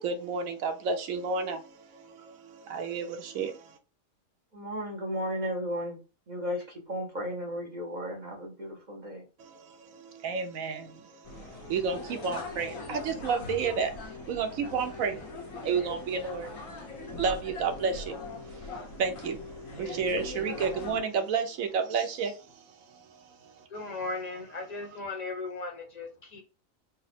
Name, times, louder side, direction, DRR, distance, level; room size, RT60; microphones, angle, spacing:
voice 1, 0.0-3.8 9.4-23.7, right 5 dB, 80° right, 1.1 m, -32 dB
voice 2, 4.5-6.0 6.3-9.3, equal, 35° right, 0.9 m, -34 dB
sound 1, 11.2-21.0, left 3 dB, 75° left, 1.3 m, -41 dB
voice 3, 23.7-26.4, left 3 dB, 35° left, 0.8 m, -37 dB
4.0 x 2.0 x 4.1 m
omnidirectional pair, 1.4 m